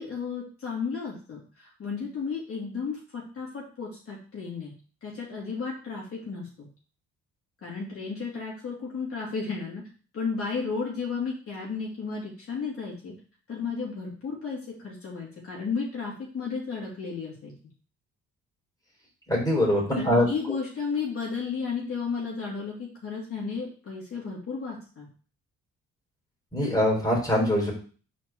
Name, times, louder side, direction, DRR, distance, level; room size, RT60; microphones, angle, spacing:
voice 1, 0.0-4.7 5.0-6.7 7.6-9.8 10.1-13.1 13.5-17.5 20.0-25.1, left 5 dB, 50° left, -5 dB, 2.9 m, -33 dB
voice 2, 19.3-20.3 26.5-27.7, left 1 dB, 10° left, -3 dB, 3.6 m, -23 dB
5.1 x 4.5 x 4.5 m, 0.39 s
cardioid pair, 90°, 30 cm